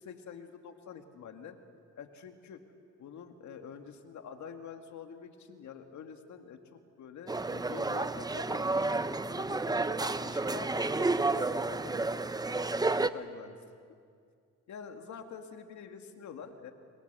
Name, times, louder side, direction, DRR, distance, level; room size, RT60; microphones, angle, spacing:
voice 1, 0.0-1.6 2.0-2.6 3.0-12.1 13.0-13.6 14.7-16.7, left 6 dB, 70° left, 5 dB, 2.1 m, -46 dB
sound 1, 7.3-13.1, right 3 dB, 15° right, 0.7 m, -31 dB
25.0 x 22.5 x 6.9 m, 2.2 s
cardioid pair, 90°, 30 cm